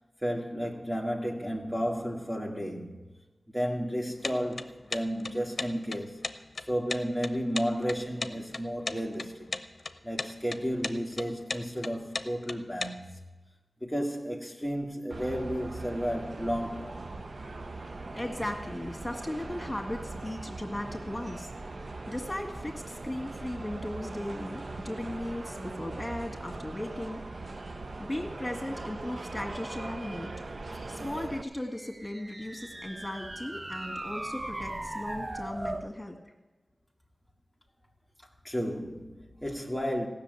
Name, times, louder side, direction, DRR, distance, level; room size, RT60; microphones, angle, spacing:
voice 1, 0.2-3.0 3.5-6.2 6.6-9.6 10.0-13.2 13.8-17.0 38.4-40.1, equal, 10° right, 1.7 m, -32 dB
sound 1, 4.2-12.9, left 3 dB, 60° left, 0.7 m, -35 dB
sound 2, 15.1-31.4, right 2 dB, 60° right, 0.7 m, -40 dB
voice 2, 18.1-21.5 22.1-27.2 28.0-30.3 30.9-36.2, left 1 dB, 20° left, 2.1 m, -37 dB
sound 3, 31.5-35.9, right 1 dB, 35° right, 0.9 m, -38 dB
15.5 x 6.5 x 9.1 m
wide cardioid pair, 60°, 0 cm